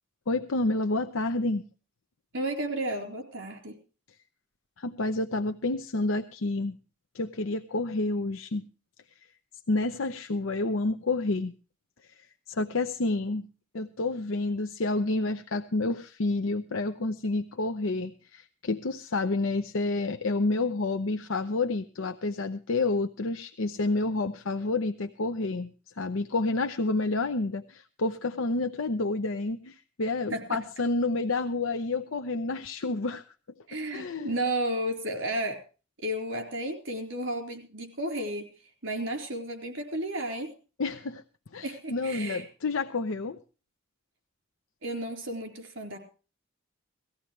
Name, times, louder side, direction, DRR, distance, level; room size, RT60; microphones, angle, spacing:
voice 1, 0.3-1.6 4.8-6.8 7.1-8.7 9.7-11.5 12.0-12.1 12.5-13.5 13.7-33.2 33.9-34.4 40.8-41.2 41.5-43.4, left 2 dB, 75° left, 7 dB, 0.7 m, -29 dB
voice 2, 2.3-3.8 30.3-30.6 33.7-35.6 36.0-38.5 38.8-40.5 41.6-42.4 44.8-46.0, right 1 dB, 65° right, 5 dB, 4.1 m, -32 dB
19.0 x 14.5 x 3.2 m, 0.35 s
head